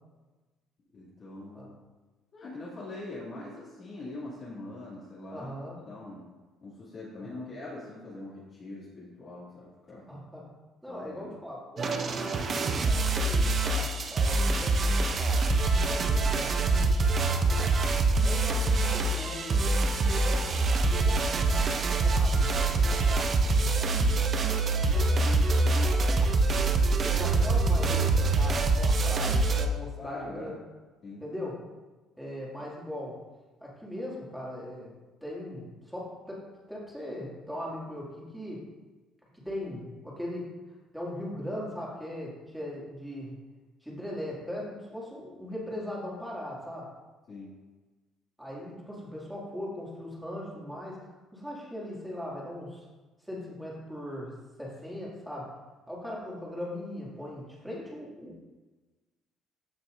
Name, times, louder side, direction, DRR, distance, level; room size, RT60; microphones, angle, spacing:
voice 1, 0.9-1.7 2.3-5.5 5.8-6.2 6.6-10.1 10.9-11.3 30.0-30.6 31.0-31.2 47.3-47.5, left 2 dB, 35° left, -9 dB, 2.4 m, -42 dB
voice 2, 5.3-5.8 7.2-7.5 10.1-10.5 10.8-12.4 12.7-15.1 15.7-17.8 18.2-19.6 20.1-24.2 24.7-26.3 27.0-30.5 31.2-31.6 32.2-33.1 33.6-34.9 35.2-36.4 36.7-38.6 39.5-40.5 40.9-43.4 43.8-46.9 48.4-52.8 53.3-55.5 55.9-58.4, left 1 dB, ahead, -6 dB, 2.3 m, -40 dB
sound 1, 11.8-29.7, right 3 dB, 30° right, 0.6 m, -25 dB
14.0 x 6.0 x 2.6 m, 1.2 s
cardioid pair, 160°, 0 cm